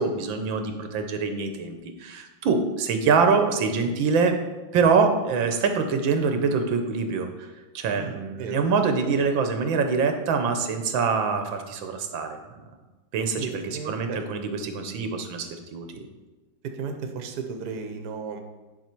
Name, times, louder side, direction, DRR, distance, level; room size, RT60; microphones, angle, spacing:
voice 1, 0.0-4.3 4.7-7.5 7.7-12.4 13.1-13.4 13.9-16.1, right 5 dB, 85° right, 6 dB, 1.6 m, -24 dB
voice 2, 8.0-9.2 13.4-14.2 16.6-18.4, right 5 dB, 60° right, 5 dB, 1.4 m, -34 dB
10.0 x 5.6 x 4.5 m, 1.2 s
omnidirectional pair, 2.0 m